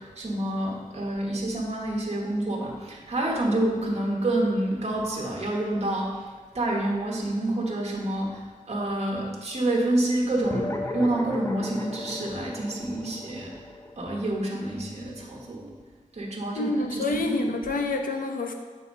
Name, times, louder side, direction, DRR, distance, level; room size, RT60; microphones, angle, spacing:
voice 1, 0.0-6.2 6.5-13.5 14.0-15.7 16.1-17.4, right 1 dB, 50° right, -2 dB, 1.2 m, -28 dB
sound 1, 10.4-15.3, left 1 dB, 20° left, 0.6 m, -36 dB
voice 2, 16.6-18.5, left 2 dB, 80° left, 4 dB, 0.7 m, -27 dB
6.7 x 4.2 x 5.2 m, 1.4 s
wide cardioid pair, 120°, 14 cm